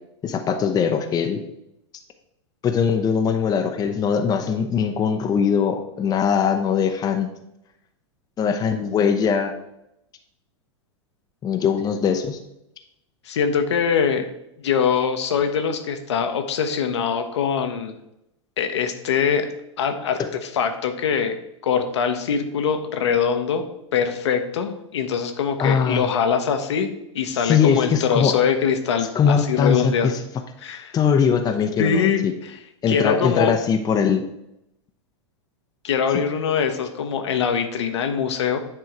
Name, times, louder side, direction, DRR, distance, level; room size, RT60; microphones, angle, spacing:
voice 1, 0.2-1.4 2.6-7.3 8.4-9.5 11.4-12.4 25.6-26.1 27.3-28.3 29.1-30.2 30.9-32.3 32.8-34.2 36.1-36.2, left 7 dB, 25° left, 6 dB, 0.7 m, -21 dB
voice 2, 13.3-14.3 14.6-18.0 18.6-19.5 19.8-20.2 20.5-21.4 21.6-23.6 23.9-30.1 30.6-31.0 31.8-32.6 32.9-33.5 35.8-38.6, left 7 dB, 70° left, 6 dB, 1.0 m, -23 dB
9.5 x 3.6 x 4.7 m, 0.83 s
hypercardioid pair, 95°, 15 cm